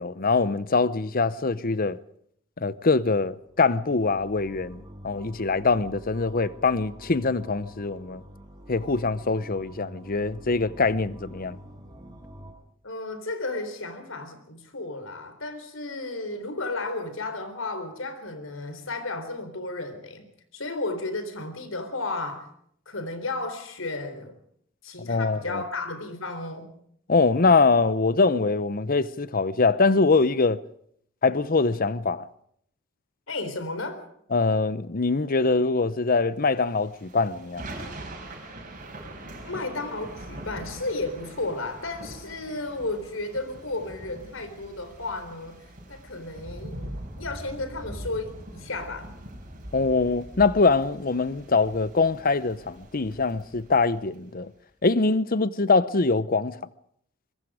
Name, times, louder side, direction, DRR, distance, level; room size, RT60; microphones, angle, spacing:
voice 1, 0.0-2.0 2.6-8.2 8.7-11.6 25.0-25.6 27.1-30.6 31.2-32.3 34.3-37.7 49.7-54.5 54.8-56.6, left 3 dB, 45° left, 0.9 m, -23 dB
sound 1, 3.3-12.5, equal, 20° right, 6.7 m, -47 dB
voice 2, 12.8-22.5 22.9-24.3 24.8-26.7 33.3-34.0 39.4-45.6 45.9-49.2, left 2 dB, 75° left, 4.0 m, -33 dB
Thunder / Rain, 36.7-54.2, right 1 dB, 40° right, 6.2 m, -42 dB
24.5 x 22.0 x 5.0 m
head